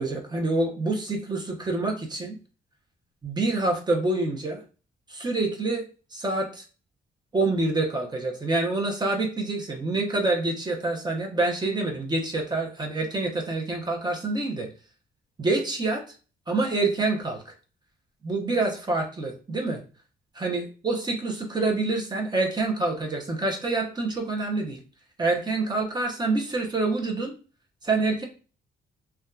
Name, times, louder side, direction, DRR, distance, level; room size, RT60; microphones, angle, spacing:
voice 1, 0.0-2.3 3.2-4.6 5.1-5.8 6.1-6.6 7.3-14.7 15.4-16.0 16.5-17.5 18.2-19.8 20.3-24.8 25.2-27.3 27.8-28.2, right 2 dB, 25° right, 1 dB, 0.7 m, -26 dB
2.6 x 2.2 x 2.2 m, 0.35 s
cardioid pair, 85°, 18 cm